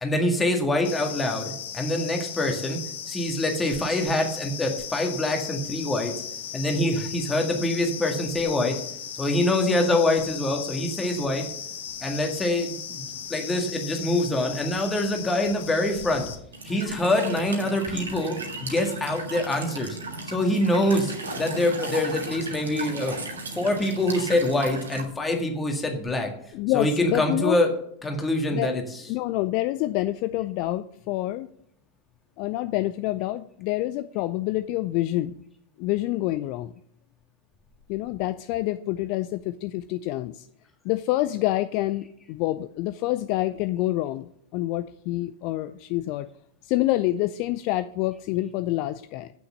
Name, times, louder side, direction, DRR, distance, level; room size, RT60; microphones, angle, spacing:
voice 1, 0.0-2.8 3.1-6.1 6.5-8.8 9.2-11.4 12.0-16.3 16.6-20.0 20.3-23.2 23.5-26.3 26.7-27.7 28.0-28.8, left 1 dB, 15° left, 3 dB, 1.8 m, -25 dB
sound 1, 0.8-16.3, left 8 dB, 60° left, 1.1 m, -37 dB
Walk footsteps / Chirp tweet / Stream, 16.5-25.0, right 2 dB, 70° right, 1.7 m, -36 dB
voice 2, 26.5-27.6 28.5-28.8 29.1-31.5 32.4-35.3 35.8-36.7 37.9-40.5 40.8-46.3 46.6-49.3, left 16 dB, 45° left, 12 dB, 0.4 m, -27 dB
8.3 x 6.4 x 7.1 m, 0.69 s
figure-of-eight pair, 90°, 0 cm